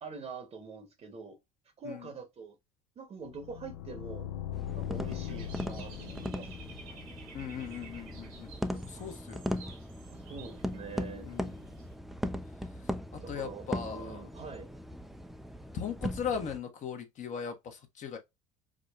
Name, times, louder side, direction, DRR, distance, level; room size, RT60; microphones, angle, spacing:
voice 1, 0.0-1.4 1.8-2.6 3.0-4.3 4.7-6.5 10.1-11.4 13.2-14.7, right 4 dB, 40° right, 0.9 m, -45 dB
sound 1, 3.2-8.2, left 12 dB, 80° left, 0.4 m, -41 dB
sound 2, 4.5-16.6, equal, ahead, 0.3 m, -39 dB
Dog / Bird, 4.9-12.0, right 5 dB, 80° right, 1.3 m, -53 dB
voice 2, 7.3-9.6 11.3-11.5 13.3-14.2 15.7-18.2, left 7 dB, 45° left, 0.9 m, -38 dB
4.8 x 2.1 x 2.2 m
hypercardioid pair, 65°, 18 cm